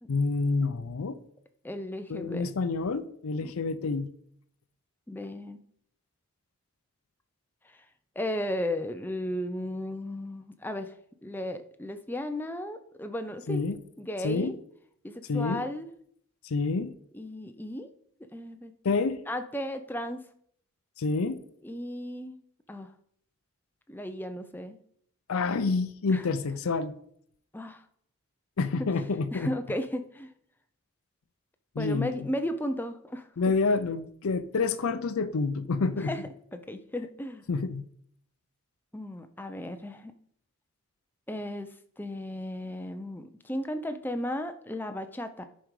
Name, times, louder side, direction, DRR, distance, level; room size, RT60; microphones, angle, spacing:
voice 1, 0.1-1.2 2.1-4.1 13.5-13.8 14.2-14.5 15.3-15.6 16.4-17.0 18.8-19.2 21.0-21.4 25.3-27.0 28.6-29.5 31.8-32.3 33.4-36.1 37.5-37.8, left 4 dB, 75° left, 10 dB, 0.5 m, -28 dB
voice 2, 1.6-2.5 3.4-3.5 5.1-5.6 7.7-7.8 8.2-10.9 11.2-13.6 14.0-14.5 15.0-15.9 17.1-17.9 18.3-18.7 19.3-20.2 21.6-22.4 22.7-22.9 23.9-24.8 26.1-26.2 27.5-27.8 29.3-30.3 31.8-33.3 35.9-36.2 36.5-37.4 38.9-40.1 41.3-45.4, left 1 dB, 10° left, 8 dB, 0.5 m, -35 dB
10.0 x 5.1 x 4.7 m, 0.66 s
head